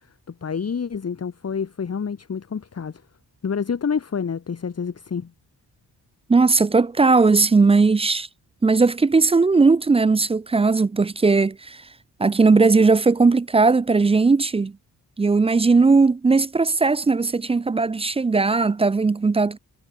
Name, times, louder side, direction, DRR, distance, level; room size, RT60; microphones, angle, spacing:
voice 1, 0.3-3.0 3.4-5.3, left 6 dB, 40° left, 1.3 m, -28 dB
voice 2, 6.3-8.3 8.6-11.8 12.2-14.7 15.2-19.6, right 4 dB, 15° right, 0.3 m, -18 dB
cardioid pair, 70°, 38 cm